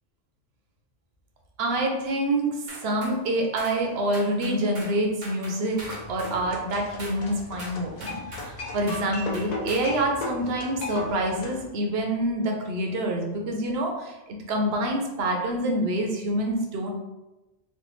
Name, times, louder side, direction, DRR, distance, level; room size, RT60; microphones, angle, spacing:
voice 1, 1.6-2.6 2.8-5.8 6.1-16.9, right 1 dB, 80° right, 1 dB, 0.9 m, -27 dB
sound 1, 2.7-3.2 3.6-3.8 4.1-5.0 5.2-6.4 7.0-7.2 7.6-8.5 8.9-9.1 9.3-9.9, right 1 dB, 50° right, 0.9 m, -41 dB
sound 2, 5.8-11.7, left 2 dB, 55° left, 0.5 m, -36 dB
3.2 x 2.3 x 3.0 m, 1.0 s
omnidirectional pair, 1.0 m